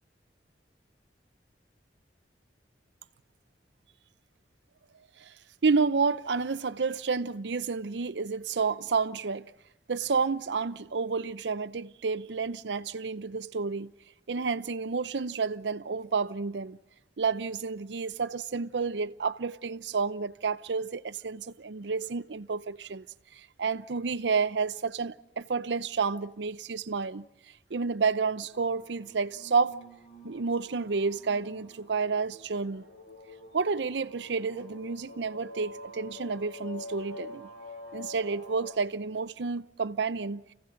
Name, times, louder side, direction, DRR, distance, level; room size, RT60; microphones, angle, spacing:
voice 1, 5.6-9.5 9.9-13.9 14.3-16.8 17.2-23.0 23.3-27.3 27.7-29.8 30.2-32.8 33.5-37.5 37.9-40.4, right 4 dB, 80° right, 0.6 m, -30 dB
sound 1, 28.4-38.7, left 1 dB, 75° left, 7.5 m, -47 dB
29.5 x 16.5 x 5.8 m
head